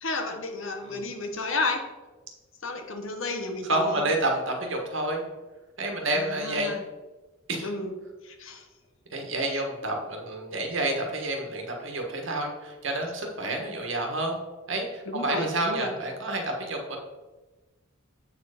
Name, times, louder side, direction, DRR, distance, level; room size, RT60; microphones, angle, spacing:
voice 1, 0.0-1.9 2.6-4.1 6.1-6.8 7.6-8.0 8.2-8.6 15.1-15.9, left 2 dB, 65° left, 5 dB, 1.0 m, -32 dB
voice 2, 3.6-5.2 5.8-6.8 7.5-7.7 9.1-14.3 14.7-17.0, right 2 dB, 60° right, 2 dB, 1.4 m, -29 dB
8.0 x 4.6 x 4.9 m, 1.2 s
head